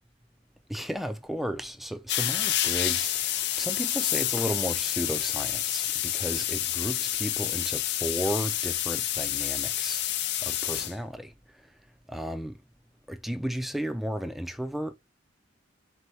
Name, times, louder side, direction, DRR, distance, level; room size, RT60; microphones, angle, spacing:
voice 1, 0.7-10.0 10.4-11.3 12.1-12.6 13.1-14.9, equal, ahead, 0.4 m, -34 dB
sound 1, 2.1-10.9, left 12 dB, 65° left, 0.5 m, -29 dB
4.3 x 2.8 x 3.3 m
head